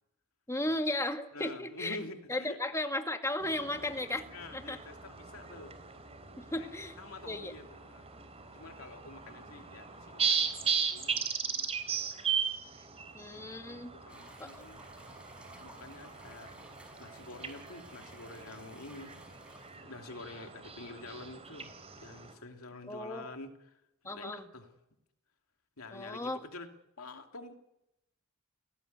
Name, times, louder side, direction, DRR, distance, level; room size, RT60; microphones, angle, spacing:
voice 1, 0.5-2.0 2.3-4.2 4.5-4.8 6.4-7.0 7.3-7.5 13.1-13.9 14.4-14.6 22.9-23.2 24.0-24.4 25.9-26.4, left 1 dB, 15° left, 5 dB, 2.1 m, -35 dB
voice 2, 1.3-2.6 3.6-5.7 6.6-6.7 7.0-8.1 8.5-12.2 13.0-14.8 15.6-16.7 17.0-19.1 19.8-24.7 25.8-26.7 27.0-27.5, left 2 dB, 80° left, 5 dB, 2.8 m, -48 dB
sound 1, 3.4-22.3, right 6 dB, 30° right, 3.7 m, -38 dB
sound 2, 14.1-19.8, right 1 dB, 5° right, 5.6 m, -56 dB
30.0 x 18.0 x 9.6 m, 0.88 s
head